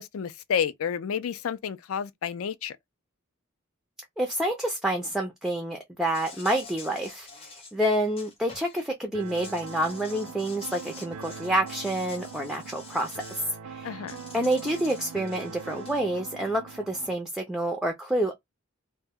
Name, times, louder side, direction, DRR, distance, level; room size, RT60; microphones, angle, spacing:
voice 1, 0.0-2.8 13.8-14.2, left 7 dB, 70° left, 0.3 m, -30 dB
voice 2, 4.2-13.2 13.6-14.0 14.3-18.3, right 1 dB, ahead, 0.3 m, -28 dB
Insect, 6.1-8.8 9.2-13.5 14.1-16.0, left 4 dB, 25° left, 0.7 m, -47 dB
sound 1, 9.1-17.2, right 5 dB, 90° right, 0.4 m, -42 dB
2.1 x 2.1 x 3.4 m
head